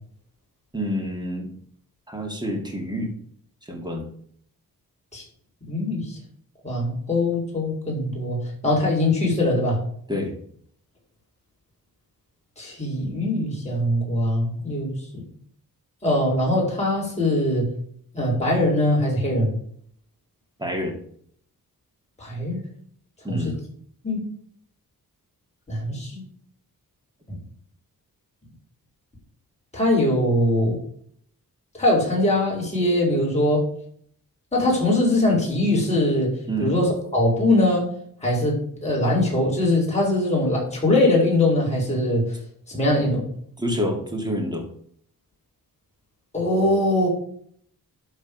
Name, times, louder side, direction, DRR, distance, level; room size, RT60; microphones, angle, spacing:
voice 1, 0.7-1.5 2.1-3.1 3.7-4.1 10.1-10.3 20.6-21.0 23.2-23.6 25.9-26.0 36.5-36.7 43.6-44.6, equal, 10° right, 1 dB, 2.4 m, -27 dB
voice 2, 5.7-6.2 6.6-8.4 8.6-9.8 12.6-14.9 16.0-17.7 18.1-19.5 22.2-22.6 23.3-23.4 24.0-24.2 25.7-26.2 29.7-30.8 31.7-33.6 34.5-36.3 36.6-37.8 38.2-42.2 42.7-43.2 46.3-47.1, left 1 dB, 20° left, -3 dB, 4.4 m, -22 dB
12.0 x 4.1 x 5.3 m, 0.63 s
wide cardioid pair, 120°, 36 cm